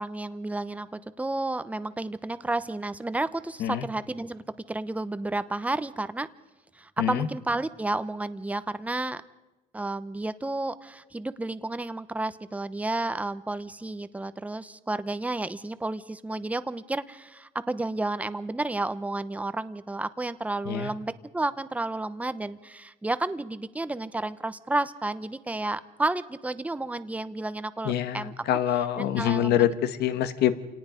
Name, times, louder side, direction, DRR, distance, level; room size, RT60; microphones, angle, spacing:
voice 1, 0.0-6.3 6.7-9.2 9.7-28.3 29.0-29.6, right 2 dB, 10° right, 13 dB, 0.9 m, -31 dB
voice 2, 7.0-7.3 20.6-20.9 27.8-30.5, left 11 dB, 75° left, 11 dB, 1.4 m, -25 dB
28.0 x 18.5 x 5.2 m, 1.1 s
cardioid pair, 110°, 17 cm